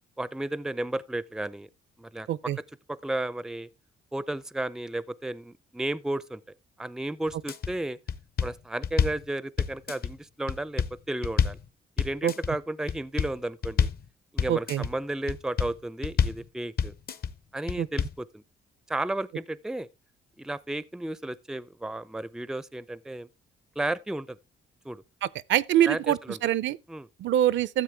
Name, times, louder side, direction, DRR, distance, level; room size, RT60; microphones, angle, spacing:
voice 1, 0.2-1.7 2.0-2.3 2.9-3.7 4.1-6.4 6.8-8.0 8.4-11.6 12.0-13.9 14.3-16.9 17.5-18.4 18.9-19.9 20.4-23.3 23.8-24.4 24.8-25.0 25.9-26.4 26.9-27.1, right 1 dB, 5° right, 0.4 m, -33 dB
voice 2, 2.3-2.6 12.2-12.3 14.5-14.9 17.8-17.9 25.5-26.8 27.2-27.8, right 11 dB, 70° right, 0.5 m, -24 dB
sound 1, 7.3-7.7 8.1-9.2 9.6-10.1 10.5-11.6 12.0-12.5 12.9-13.3 13.6-14.0 14.4-14.9 15.3-15.7 16.0-16.4 16.8-17.3 17.7-18.2, left 7 dB, 50° left, 0.8 m, -27 dB
13.0 x 7.4 x 3.3 m
cardioid pair, 90°, 20 cm